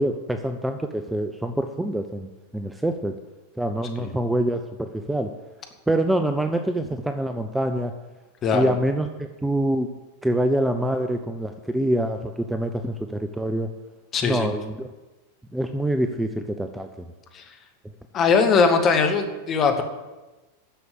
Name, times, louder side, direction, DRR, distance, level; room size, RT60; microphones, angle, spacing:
voice 1, 0.0-3.1 3.6-5.3 5.9-7.9 8.5-9.9 10.2-13.7 14.2-14.9 15.5-16.9, right 1 dB, 5° right, 7 dB, 0.6 m, -25 dB
voice 2, 8.4-8.7 14.1-14.5 17.3-17.4 18.1-19.8, left 5 dB, 30° left, 6 dB, 1.5 m, -20 dB
10.5 x 6.8 x 8.7 m, 1.1 s
figure-of-eight pair, 90°, 0 cm